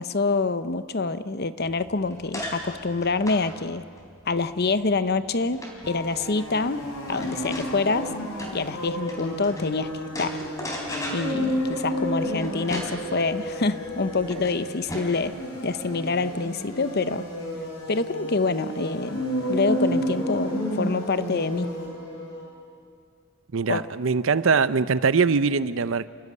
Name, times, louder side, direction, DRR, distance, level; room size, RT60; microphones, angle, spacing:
voice 1, 0.0-3.8 4.3-6.8 7.1-8.1 8.5-10.3 11.1-15.3 15.6-17.2 17.9-19.2 19.5-21.7 23.7-23.8, left 3 dB, 50° left, 13 dB, 0.8 m, -26 dB
sound 1, 1.6-9.7 10.1-15.3, equal, 15° left, 3.6 m, -38 dB
sound 2, 5.8-22.4, equal, 85° left, 5.2 m, -31 dB
voice 2, 23.5-26.1, right 5 dB, 65° right, 15 dB, 0.6 m, -22 dB
29.0 x 13.5 x 9.6 m, 2.2 s
head